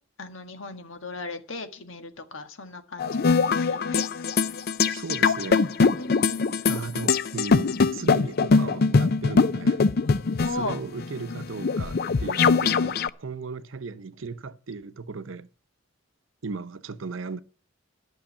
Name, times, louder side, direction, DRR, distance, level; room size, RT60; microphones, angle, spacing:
voice 1, 0.2-4.0 5.9-6.5 7.7-7.8 10.4-10.7 11.3-11.4 12.5-12.8, left 3 dB, 80° left, 1.6 m, -36 dB
sound 1, 3.0-13.1, left 4 dB, 50° left, 0.5 m, -22 dB
voice 2, 4.9-5.7 6.7-9.9 10.5-15.5 16.4-17.4, right 4 dB, 80° right, 0.7 m, -36 dB
11.5 x 6.4 x 8.4 m
head